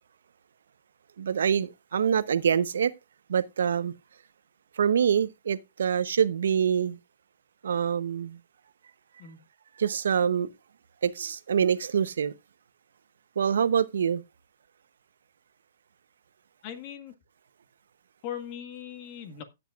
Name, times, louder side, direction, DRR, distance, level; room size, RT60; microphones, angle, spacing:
voice 1, 1.2-2.9 3.3-3.9 4.8-7.0 7.6-8.4 9.8-10.5 11.0-12.3 13.4-14.2, right 7 dB, 85° right, 0.8 m, -25 dB
voice 2, 16.6-17.1 18.2-19.4, left 9 dB, 35° left, 1.7 m, -39 dB
16.5 x 8.0 x 2.4 m
hypercardioid pair, 155°, 0 cm